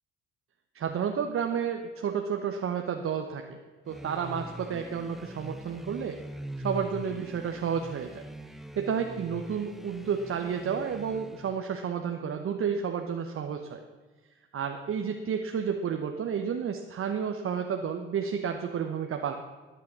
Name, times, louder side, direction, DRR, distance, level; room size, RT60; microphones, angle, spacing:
voice 1, 0.7-3.6 3.9-6.2 6.6-8.2 8.8-13.8 14.5-19.3, right 7 dB, 50° right, 4 dB, 1.1 m, -31 dB
sound 1, 3.9-11.7, equal, ahead, 0.9 m, -42 dB
13.0 x 9.3 x 6.3 m, 1.4 s
hypercardioid pair, 50°, 29 cm